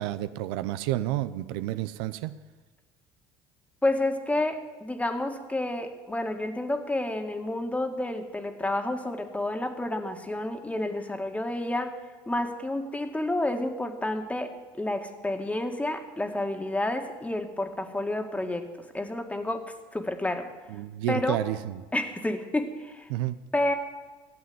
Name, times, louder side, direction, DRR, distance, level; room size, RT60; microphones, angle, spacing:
voice 1, 0.0-2.4 20.7-21.8 23.1-23.4, right 14 dB, 80° right, 13 dB, 0.6 m, -30 dB
voice 2, 3.8-11.9 12.3-14.5 14.8-18.7 18.9-19.6 19.9-20.5 21.1-21.4 21.9-23.1 23.5-23.7, left 1 dB, 10° left, 5 dB, 1.9 m, -30 dB
13.5 x 8.0 x 9.6 m, 1.3 s
supercardioid pair, 80°, 13 cm